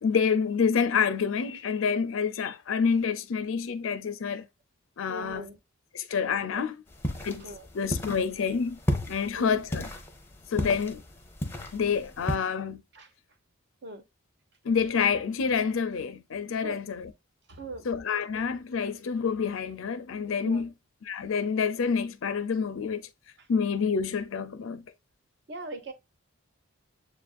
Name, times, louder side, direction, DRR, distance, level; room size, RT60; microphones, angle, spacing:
voice 1, 0.0-4.5 5.0-5.5 5.9-6.7 7.2-7.5 7.7-8.8 9.1-9.9 10.5-11.0 11.7-12.8 14.6-17.1 17.8-20.7 21.1-23.0 23.5-24.8, left 6 dB, 70° left, 0.4 m, -28 dB
voice 2, 5.1-5.6 6.5-6.7 7.4-7.7 9.3-9.6 10.5-10.8 12.9-13.1 13.8-14.0 16.6-16.8 17.5-17.9 20.4-20.6 25.5-25.9, right 1 dB, 55° right, 0.7 m, -40 dB
sound 1, 6.9-12.3, left 1 dB, 10° left, 0.6 m, -34 dB
7.1 x 2.5 x 2.3 m
head